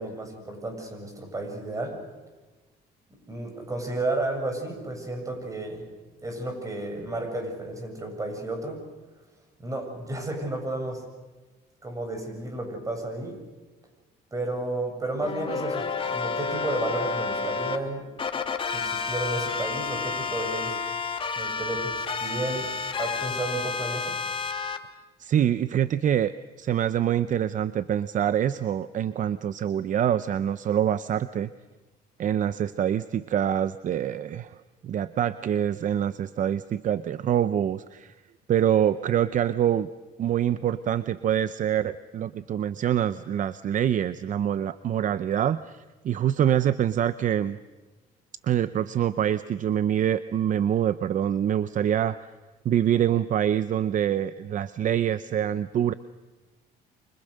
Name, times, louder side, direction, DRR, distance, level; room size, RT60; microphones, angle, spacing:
voice 1, 0.0-2.0 3.3-5.8 6.2-8.8 9.6-11.0 11.8-13.4 14.3-18.1 18.7-20.8 21.4-22.7 23.0-24.2, right 2 dB, 20° right, 5 dB, 7.6 m, -32 dB
sound 1, 15.2-17.8 18.2-24.8, left 5 dB, 30° left, 2.4 m, -30 dB
voice 2, 25.2-31.5 32.2-34.6 34.8-38.1 38.5-39.9 40.2-47.6 48.4-52.2 52.6-55.9, right 10 dB, 50° right, 14 dB, 0.8 m, -25 dB
28.5 x 25.5 x 6.6 m, 1.2 s
cardioid pair, 110°, 17 cm